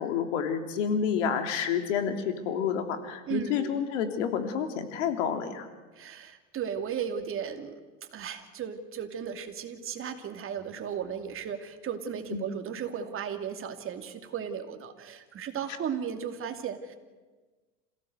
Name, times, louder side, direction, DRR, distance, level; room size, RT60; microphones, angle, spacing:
voice 1, 0.0-5.7 12.3-12.4, left 7 dB, 75° left, 6 dB, 3.2 m, -29 dB
voice 2, 3.3-3.7 6.0-7.7 8.1-17.0, right 8 dB, 35° right, 6 dB, 2.7 m, -35 dB
27.0 x 16.5 x 8.0 m, 1.3 s
hypercardioid pair, 105°, 37 cm